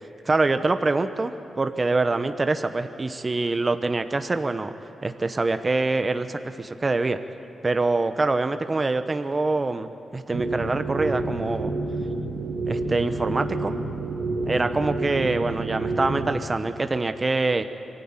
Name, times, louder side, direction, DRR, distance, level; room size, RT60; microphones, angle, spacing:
voice 1, 0.2-4.7 5.0-7.2 7.6-11.7 12.7-13.7 14.5-17.6, right 3 dB, 35° right, 9 dB, 0.9 m, -25 dB
sound 1, 10.3-16.4, right 2 dB, 85° right, 2.1 m, -29 dB
24.0 x 14.0 x 8.9 m, 2.9 s
cardioid pair, 60°, 0 cm